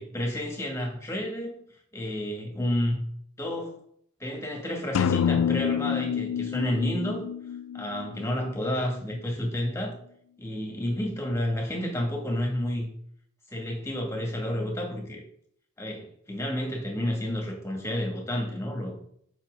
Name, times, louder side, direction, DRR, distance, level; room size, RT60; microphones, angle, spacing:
voice 1, 0.0-1.6 1.9-3.0 3.4-3.8 4.2-7.3 7.7-10.0 10.4-12.9 13.5-15.2 15.8-19.0, left 1 dB, 15° left, 1 dB, 2.2 m, -30 dB
sound 1, 4.9-8.7, left 8 dB, 75° left, 0.3 m, -28 dB
9.0 x 6.4 x 3.8 m, 0.64 s
head